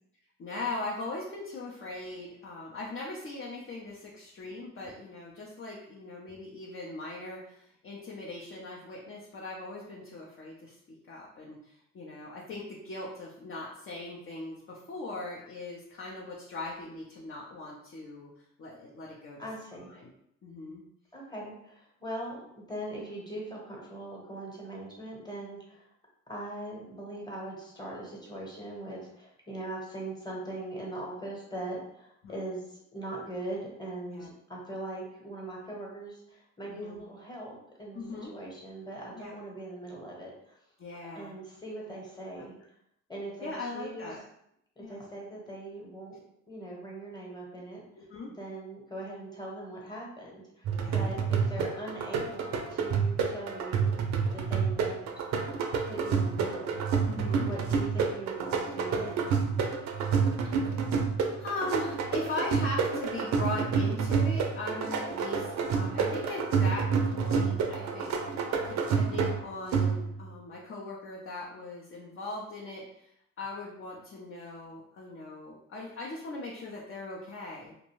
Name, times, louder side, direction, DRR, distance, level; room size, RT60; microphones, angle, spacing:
voice 1, 0.4-10.8 11.1-18.3 18.6-19.5 19.9-20.1 20.4-20.8 32.2-32.4 34.1-34.3 36.7-37.0 37.9-38.3 39.2-39.3 40.8-41.3 42.4-42.5 43.4-44.2 44.8-45.1 48.0-48.3 50.8-51.3 57.1-57.5 60.0-60.2 60.4-60.8 61.4-68.2 68.4-73.1 73.4-77.7, left 2 dB, 45° left, -4 dB, 0.6 m, -39 dB
voice 2, 19.4-19.9 21.1-25.8 26.3-40.6 41.1-42.5 43.1-44.1 44.8-46.2 46.5-47.8 48.4-53.9 54.3-55.0 55.8-56.8 57.3-59.3, right 1 dB, 15° left, -3 dB, 1.0 m, -41 dB
sound 1, 50.6-70.3, right 5 dB, 65° right, 0.5 m, -29 dB
2.5 x 2.1 x 3.0 m, 0.74 s
cardioid pair, 90°, 30 cm